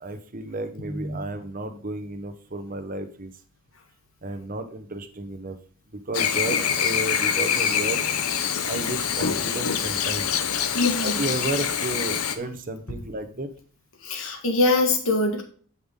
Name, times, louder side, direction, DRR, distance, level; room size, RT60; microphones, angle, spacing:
voice 1, 0.0-3.3 4.2-5.6 5.9-8.0 8.6-10.3 11.0-13.5, right 2 dB, 40° right, 8 dB, 0.9 m, -32 dB
voice 2, 0.8-1.2 10.7-11.2 14.0-15.4, left 2 dB, 60° left, 5 dB, 1.7 m, -23 dB
Chirp tweet / Buzz, 6.1-12.4, left 8 dB, 80° left, 0.9 m, -25 dB
11.0 x 5.8 x 3.7 m, 0.43 s
head